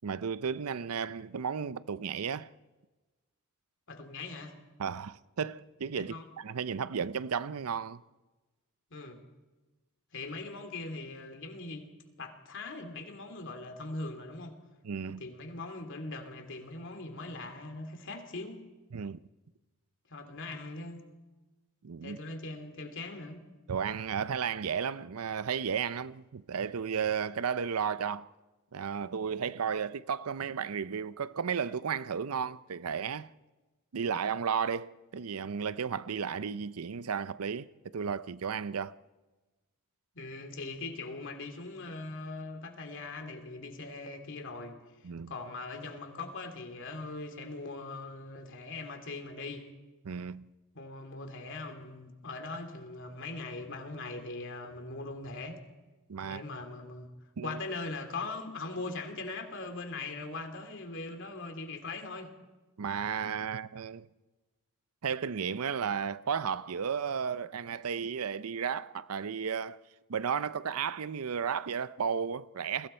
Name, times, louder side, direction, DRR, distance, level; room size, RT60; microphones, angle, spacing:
voice 1, 0.0-2.5 4.8-8.0 14.8-15.2 18.9-19.2 21.8-22.2 23.7-28.3 28.7-33.3 33.9-39.0 45.0-45.3 50.0-50.5 56.1-56.4 57.4-57.6 62.8-64.1 65.0-69.8 70.1-72.9, right 6 dB, 90° right, 0.6 m, -33 dB
voice 2, 3.9-4.5 6.1-6.2 8.9-9.2 10.1-11.9 12.2-14.6 15.1-18.6 20.1-21.0 22.0-23.4 40.1-44.8 45.3-49.7 50.7-55.6 56.2-57.1 57.4-62.3, left 3 dB, 60° left, 2.7 m, -41 dB
29.5 x 21.5 x 4.4 m
head